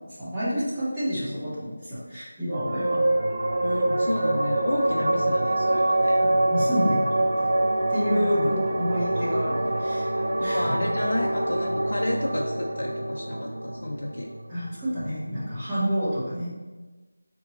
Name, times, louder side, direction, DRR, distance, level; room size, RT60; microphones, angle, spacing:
voice 1, 0.2-3.0 6.2-7.5 7.9-10.1 10.4-10.7 14.5-16.5, equal, 5° right, -15 dB, 1.2 m, -29 dB
sound 1, 2.5-15.4, right 1 dB, 55° right, 0.5 m, -25 dB
voice 2, 2.8-3.1 3.6-6.2 8.1-8.6 10.4-14.3, left 1 dB, 65° left, -1 dB, 0.5 m, -31 dB
3.6 x 2.8 x 3.8 m, 1.2 s
figure-of-eight pair, 175°, 0 cm